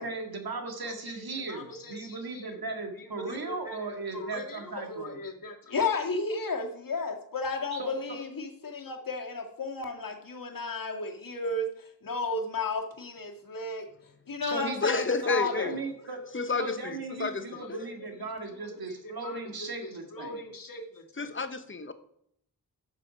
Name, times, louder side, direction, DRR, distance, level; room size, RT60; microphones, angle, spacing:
voice 1, 0.0-5.2 7.7-7.9 14.4-14.9 15.2-16.2 16.6-20.4, right 3 dB, 80° right, 2.1 m, -37 dB
voice 2, 1.1-2.5 3.0-13.9 14.3-15.8 17.1-17.7 18.0-18.1 18.6-18.7 19.0-21.3, left 3 dB, 65° left, 1.9 m, -35 dB
voice 3, 14.8-15.7 16.3-17.8 21.2-21.9, left 4 dB, 35° left, 0.9 m, -30 dB
12.5 x 6.6 x 5.1 m
wide cardioid pair, 110°, 36 cm